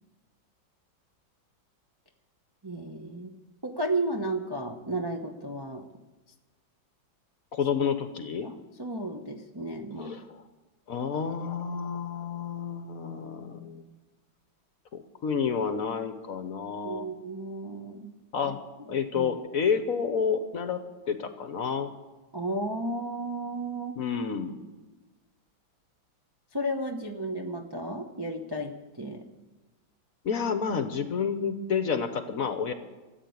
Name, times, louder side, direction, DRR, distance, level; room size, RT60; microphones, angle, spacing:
voice 1, 2.6-3.3 3.6-5.8 8.4-10.2 16.8-18.1 18.4-18.5 18.9-19.3 22.3-24.0 26.5-29.3, right 1 dB, 30° right, 2 dB, 0.4 m, -33 dB
voice 2, 7.5-8.5 10.0-10.4 10.9-13.8 14.9-17.0 18.3-18.6 18.9-21.9 24.0-24.6 30.2-32.7, left 6 dB, 55° left, 9 dB, 1.1 m, -30 dB
14.5 x 8.3 x 9.4 m, 1.2 s
omnidirectional pair, 2.1 m